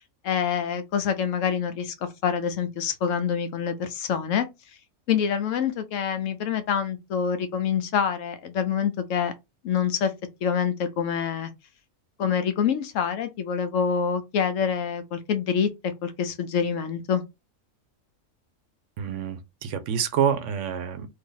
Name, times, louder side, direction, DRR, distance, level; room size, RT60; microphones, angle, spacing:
voice 1, 0.2-1.9 2.2-4.5 5.1-9.3 9.6-10.1 10.4-11.5 12.2-17.2, left 7 dB, 75° left, 1.0 m, -26 dB
voice 2, 19.0-21.1, right 8 dB, 70° right, 0.9 m, -27 dB
2.7 x 2.6 x 3.7 m
omnidirectional pair, 1.4 m